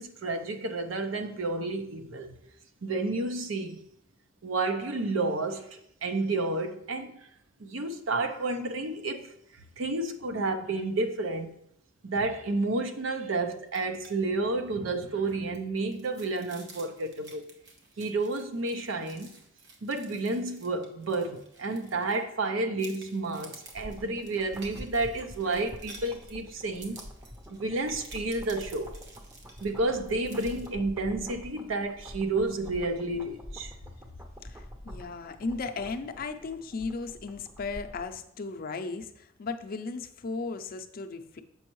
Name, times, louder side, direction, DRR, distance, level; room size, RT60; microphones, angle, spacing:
voice 1, 0.0-2.3 2.8-3.8 4.4-7.1 7.6-9.3 9.8-11.5 12.0-17.5 18.0-19.3 19.8-27.0 27.5-28.9 29.6-33.7, right 2 dB, 80° right, 0.7 m, -31 dB
sound 1, 13.7-14.1 14.4-14.6 14.9-22.4 22.8-30.7, right 3 dB, 60° right, 1.2 m, -52 dB
sound 2, 23.5-38.2 38.4-38.5, equal, 10° right, 0.6 m, -46 dB
voice 2, 34.4-41.4, left 4 dB, 50° left, 0.5 m, -36 dB
7.0 x 5.3 x 3.0 m
head